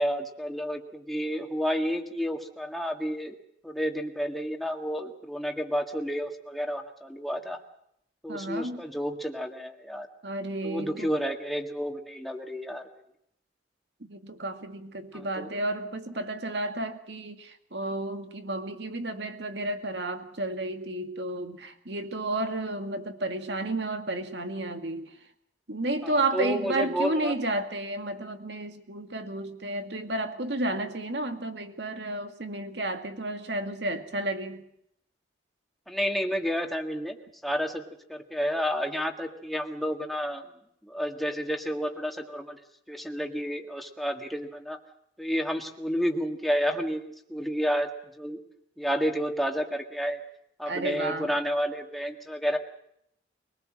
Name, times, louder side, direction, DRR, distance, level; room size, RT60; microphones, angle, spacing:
voice 1, 0.0-3.4 3.6-7.6 8.2-10.1 10.6-12.8 15.1-15.5 26.0-27.3 35.9-37.2 37.4-37.8 38.1-40.5 40.8-42.6 42.9-44.8 45.2-47.9 48.2-48.4 48.8-50.2 50.6-52.6, equal, ahead, 3 dB, 1.8 m, -30 dB
voice 2, 8.3-8.9 10.2-11.1 14.1-25.1 25.7-34.6 50.7-51.3, right 2 dB, 70° right, 7 dB, 2.1 m, -32 dB
23.5 x 19.5 x 7.6 m, 0.74 s
head